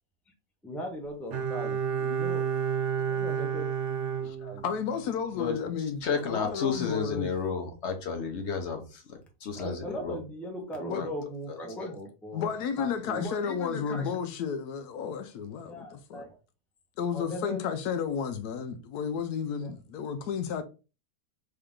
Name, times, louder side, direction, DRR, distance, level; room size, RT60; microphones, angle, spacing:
voice 1, 0.6-2.4 3.0-3.7 4.1-4.6 9.5-12.5 12.8-14.1 15.6-16.4 17.1-17.6 19.6-19.7, equal, ahead, 0.7 m, -38 dB
Bowed string instrument, 1.3-5.1 5.4-5.5, right 7 dB, 55° right, 0.9 m, -30 dB
voice 2, 4.6-6.0 6.3-7.3 10.9-11.1 12.3-16.2 17.0-20.6, left 7 dB, 80° left, 1.1 m, -32 dB
voice 3, 6.0-10.2 11.0-11.1, left 5 dB, 55° left, 0.9 m, -32 dB
3.8 x 3.3 x 3.6 m
omnidirectional pair, 1.7 m